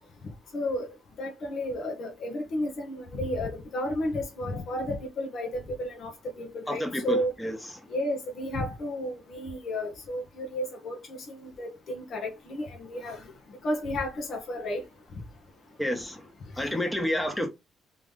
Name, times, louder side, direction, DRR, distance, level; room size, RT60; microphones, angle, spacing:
voice 1, 0.5-0.9 1.2-6.1 6.4-7.3 7.9-13.2 13.6-14.8 16.6-16.8, left 1 dB, 60° left, 1.5 m, -32 dB
voice 2, 6.7-7.8 15.8-16.3 16.6-17.5, left 1 dB, 10° left, 1.4 m, -30 dB
3.8 x 3.4 x 3.7 m
cardioid pair, 90°, 0 cm